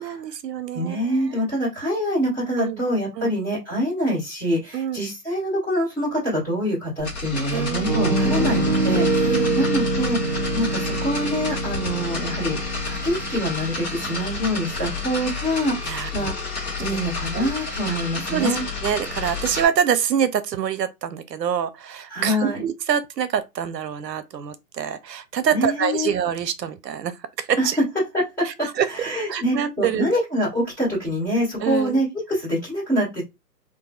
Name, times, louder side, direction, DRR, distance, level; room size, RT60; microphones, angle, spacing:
voice 1, 0.0-1.4 2.6-2.8 3.2-3.3 4.7-5.0 7.5-8.5 9.2-9.6 15.8-16.3 16.8-16.9 17.3-17.5 17.9-18.0 18.3-18.6 18.8-27.8 28.4-28.9 29.3-30.2 31.6-32.0, right 8 dB, 85° right, 0.7 m, -26 dB
voice 2, 0.7-10.2 10.5-12.6 12.8-16.3 16.8-18.6 22.1-22.6 25.5-26.1 27.6-27.7 28.1-33.2, equal, 5° left, 1.7 m, -25 dB
sound 1, 7.0-19.7, left 4 dB, 25° left, 1.1 m, -30 dB
Piano, 7.8-15.7, right 2 dB, 15° right, 1.9 m, -25 dB
4.0 x 2.6 x 2.3 m
hypercardioid pair, 160°, 48 cm